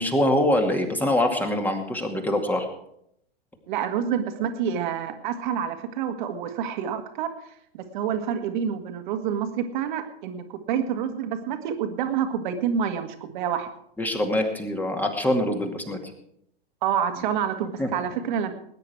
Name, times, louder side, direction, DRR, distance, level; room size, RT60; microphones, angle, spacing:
voice 1, 0.0-2.7 14.0-16.0 17.8-17.9, left 1 dB, 5° left, 4 dB, 2.2 m, -24 dB
voice 2, 3.7-13.7 16.8-18.5, right 8 dB, 50° right, 7 dB, 1.9 m, -28 dB
20.0 x 9.8 x 4.7 m, 0.74 s
figure-of-eight pair, 105°, 30 cm